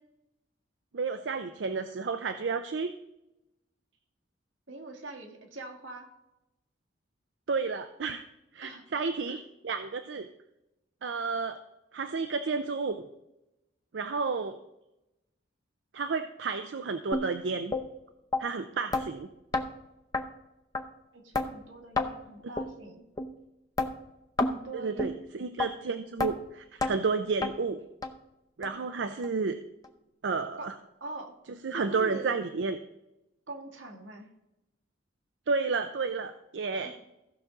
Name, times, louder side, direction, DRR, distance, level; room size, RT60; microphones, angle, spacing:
voice 1, 0.9-2.9 7.5-8.2 8.5-9.4 9.6-10.3 11.0-11.6 11.9-13.0 13.9-14.6 15.9-17.7 18.4-19.3 24.7-27.8 28.6-29.6 30.2-30.8 31.5-32.8 35.5-36.9, right 4 dB, 70° right, 8 dB, 0.5 m, -31 dB
voice 2, 4.7-6.1 8.6-8.8 9.3-9.4 21.1-23.0 24.4-25.1 28.9-29.0 30.6-30.7 31.0-31.4 31.7-32.4 33.5-34.3 36.7-36.9, right 2 dB, 90° right, 2 dB, 1.9 m, -43 dB
sound 1, 17.1-17.3 17.7-17.8 18.3-18.4 18.9-19.1 19.5-19.7 20.1-20.2 20.7-20.8 21.3-21.5 22.0-22.1 22.6-22.7 23.2-23.3 23.8-23.9 24.4-24.6 25.0-25.1 25.6-25.7 26.2-26.3 26.8-26.9 27.4-27.5 28.0-28.1 28.6-28.7 29.2-29.3 29.8-29.9, left 3 dB, 20° left, 0.7 m, -28 dB
15.5 x 6.1 x 3.8 m, 0.92 s
head